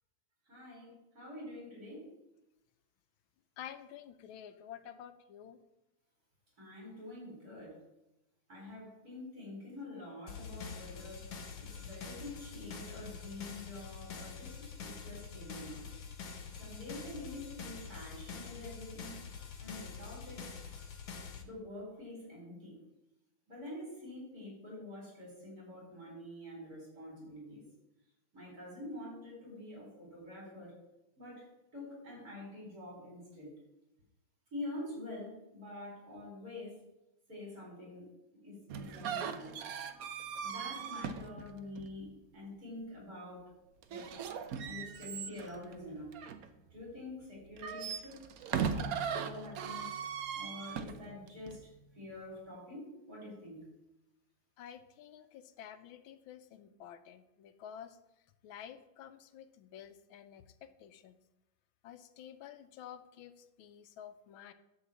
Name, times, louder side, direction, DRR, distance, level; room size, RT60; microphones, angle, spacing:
voice 1, 0.5-2.1 6.6-7.8 8.5-11.3 11.6-15.9 16.6-19.2 19.6-20.4 21.4-22.8 23.5-27.6 28.3-30.8 31.2-33.5 34.5-36.7 37.3-38.1 38.4-39.6 40.4-43.5 43.9-44.2 44.6-46.2 46.7-48.2 48.5-51.7 51.9-53.6, left 1 dB, 45° right, -3 dB, 4.7 m, -46 dB
voice 2, 3.6-5.6 54.6-58.0 58.4-61.1 61.8-64.5, left 9 dB, 80° left, 10 dB, 1.4 m, -50 dB
sound 1, 10.3-21.4, left 5 dB, 60° left, 1.5 m, -46 dB
sound 2, 38.7-42.0 43.8-46.9 47.4-51.6, right 7 dB, 65° right, 0.9 m, -39 dB
11.5 x 4.0 x 7.2 m, 0.91 s
omnidirectional pair, 2.2 m